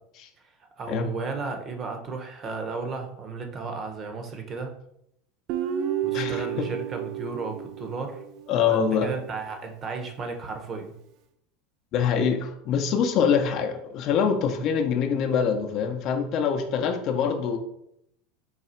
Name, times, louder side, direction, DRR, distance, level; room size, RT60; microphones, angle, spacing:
voice 1, 0.8-4.7 6.0-8.2 8.7-10.9, right 4 dB, 35° right, 5 dB, 0.8 m, -34 dB
Guitar, 5.5-8.8, right 10 dB, 55° right, 0.4 m, -31 dB
voice 2, 6.1-6.7 8.5-9.1 11.9-17.6, left 7 dB, 55° left, 5 dB, 0.5 m, -24 dB
4.0 x 2.3 x 4.2 m, 0.76 s
supercardioid pair, 110°, 0 cm